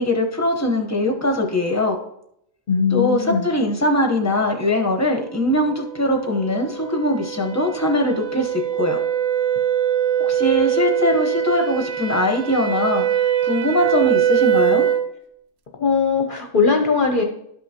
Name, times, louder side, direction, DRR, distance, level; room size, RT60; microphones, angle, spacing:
voice 1, 0.0-2.0 2.9-9.0 10.2-13.0 13.4-14.9, left 1 dB, 15° left, 2 dB, 0.8 m, -21 dB
voice 2, 2.7-3.4 15.7-17.2, left 5 dB, 50° left, 3 dB, 0.8 m, -19 dB
sound 1, 5.2-15.1, right 10 dB, 90° right, 1.0 m, -23 dB
12.5 x 5.5 x 2.9 m, 0.76 s
omnidirectional pair, 1.3 m